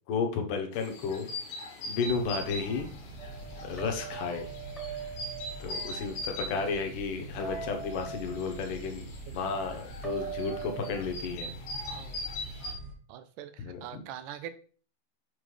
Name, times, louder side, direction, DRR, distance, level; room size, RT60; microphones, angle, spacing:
voice 1, 0.1-1.3 1.9-3.0 3.6-4.5 4.9-5.1 5.6-11.5 13.6-14.0, left 5 dB, 80° left, 4 dB, 2.7 m, -33 dB
sound 1, 0.7-12.7, left 1 dB, 65° left, 2.7 m, -42 dB
sound 2, 2.0-12.9, right 2 dB, 40° right, 1.5 m, -45 dB
sound 3, 3.2-6.4 7.4-8.7 10.0-10.9, right 7 dB, ahead, 0.5 m, -41 dB
voice 2, 9.3-9.6 11.9-12.2 13.1-14.5, right 10 dB, 80° right, 11 dB, 2.2 m, -43 dB
7.3 x 5.4 x 3.2 m, 0.41 s
omnidirectional pair, 3.7 m